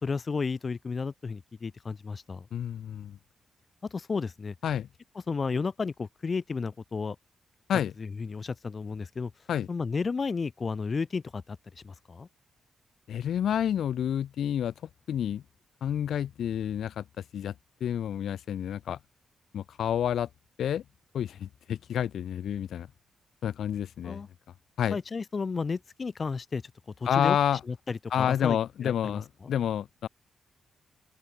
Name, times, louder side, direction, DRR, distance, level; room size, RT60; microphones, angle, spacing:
voice 1, 0.0-2.5 3.9-4.5 5.3-7.2 8.0-9.3 9.7-12.3 24.0-24.3 24.9-26.6 27.0-27.4 27.6-29.5, left 4 dB, 30° left, 2.1 m, -33 dB
voice 2, 2.5-3.2 4.6-4.9 7.7-7.9 9.5-9.7 13.1-14.7 15.1-15.4 15.8-17.0 17.3-17.5 17.8-19.0 19.5-20.3 20.6-20.8 21.1-22.9 23.4-24.2 24.8-25.0 27.1-27.6 28.1-30.1, left 9 dB, 70° left, 2.0 m, -29 dB
open air
wide cardioid pair, 165°, 0 cm